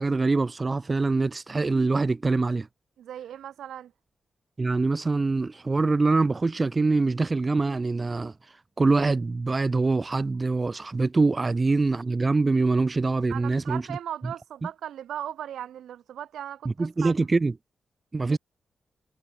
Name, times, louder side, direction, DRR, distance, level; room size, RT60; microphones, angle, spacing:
voice 1, 0.0-2.7 4.6-8.3 8.8-13.8 16.8-17.5 18.1-18.4, right 3 dB, 35° right, 2.1 m, -24 dB
voice 2, 3.0-3.9 13.3-17.1 18.3-18.4, right 10 dB, 80° right, 3.0 m, -37 dB
supercardioid pair, 50°, 0 cm